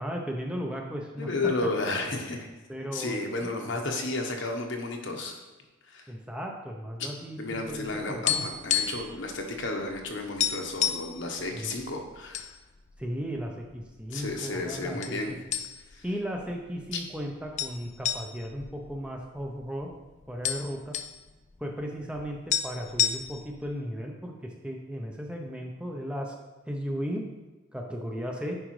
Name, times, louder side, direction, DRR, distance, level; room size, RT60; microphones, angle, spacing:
voice 1, 0.0-1.3 2.7-3.9 6.1-8.5 11.5-11.8 13.0-15.4 16.0-19.9 20.3-21.0 21.6-26.3 26.7-27.2 27.7-28.6, equal, 5° right, 1 dB, 0.6 m, -36 dB
voice 2, 1.2-2.5 2.9-5.4 5.9-6.0 7.0-7.1 7.4-12.5 14.1-15.4 15.9-16.0 16.9-17.0, left 2 dB, 65° left, 2 dB, 1.0 m, -32 dB
sound 1, 8.3-9.2 9.4-9.6 10.0-10.1 10.4-11.1 11.8-12.5 12.9-13.0 13.7-14.3 15.0-15.2 15.5-16.0 16.4-16.5 17.6-19.6 19.9-20.0 20.2-21.2 22.2-22.3 22.5-23.6, left 9 dB, 35° left, 0.3 m, -29 dB
10.0 x 4.9 x 3.2 m, 1.1 s
head